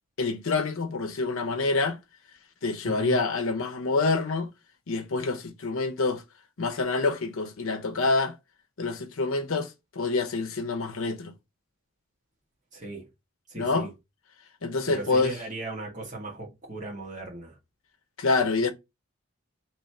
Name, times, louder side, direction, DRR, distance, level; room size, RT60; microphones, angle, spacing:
voice 1, 0.2-2.0 2.6-4.5 4.9-6.2 6.6-8.4 8.8-11.3 13.6-13.9 14.6-15.4 18.2-18.7, left 3 dB, 75° left, 0.7 m, -27 dB
voice 2, 2.8-3.2 12.7-13.1 13.5-13.9 14.8-17.6, right 2 dB, 35° right, 1.6 m, -37 dB
3.2 x 3.1 x 4.2 m
head